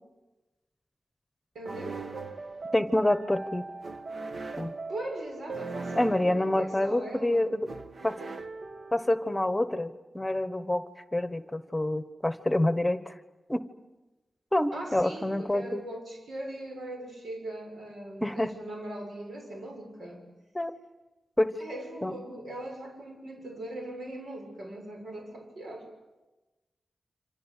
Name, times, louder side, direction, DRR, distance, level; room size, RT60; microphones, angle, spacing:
voice 1, 1.5-2.0 4.9-7.5 14.7-20.2 21.6-25.9, right 1 dB, 85° right, 2 dB, 7.2 m, -40 dB
sound 1, 1.7-9.3, right 3 dB, 65° right, 1.5 m, -40 dB
voice 2, 2.7-3.7 4.6-4.7 5.9-7.7 8.0-8.2 8.9-10.8 11.1-13.1 13.5-13.7 14.5-15.8 18.2-18.5 20.5-20.7 21.4-21.6 22.0-22.1, left 1 dB, 10° left, 11 dB, 1.2 m, -27 dB
27.5 x 26.0 x 8.3 m, 1.1 s
wide cardioid pair, 95°, 0 cm